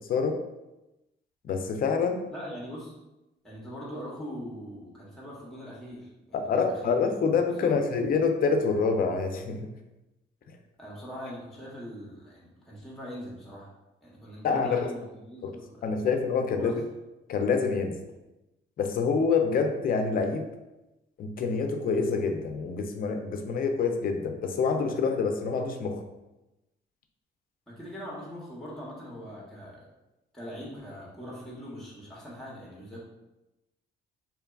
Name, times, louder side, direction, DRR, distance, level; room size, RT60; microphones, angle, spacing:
voice 1, 1.4-2.3 6.5-9.6 14.4-14.9 15.4-15.5 15.8-16.8 17.3-17.9 18.8-20.5 21.2-26.0, left 5 dB, 45° left, 5 dB, 0.4 m, -26 dB
voice 2, 2.3-2.9 3.4-7.0 7.6-7.8 10.8-13.7 14.0-15.9 16.5-16.8 27.7-29.8 30.3-33.0, equal, ahead, -5 dB, 0.7 m, -42 dB
2.8 x 2.2 x 2.3 m, 0.98 s
cardioid pair, 90°, 20 cm